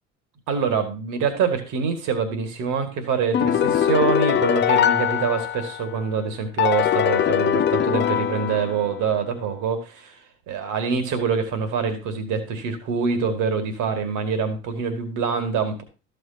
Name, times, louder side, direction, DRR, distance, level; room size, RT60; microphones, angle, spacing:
voice 1, 0.5-10.2 10.5-15.8, right 5 dB, 50° right, 8 dB, 2.2 m, -25 dB
sound 1, 3.3-6.0 6.6-9.1, left 9 dB, 30° left, 0.7 m, -22 dB
13.5 x 6.6 x 2.9 m, 0.31 s
figure-of-eight pair, 60°, 38 cm